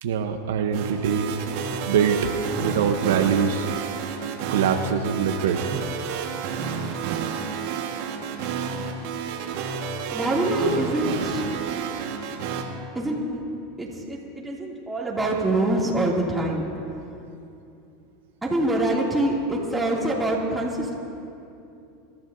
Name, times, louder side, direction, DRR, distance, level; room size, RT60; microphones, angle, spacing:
voice 1, 0.0-1.3 1.9-2.2 2.5-3.7 4.5-5.8, right 7 dB, 85° right, 6 dB, 0.9 m, -23 dB
sound 1, 0.7-12.6, right 6 dB, 65° right, 1.5 m, -30 dB
voice 2, 10.1-11.4 12.9-13.4 13.8-16.6 18.4-20.9, right 1 dB, 10° right, -4 dB, 2.6 m, -25 dB
26.0 x 13.5 x 2.7 m, 2.7 s
supercardioid pair, 130°, 0 cm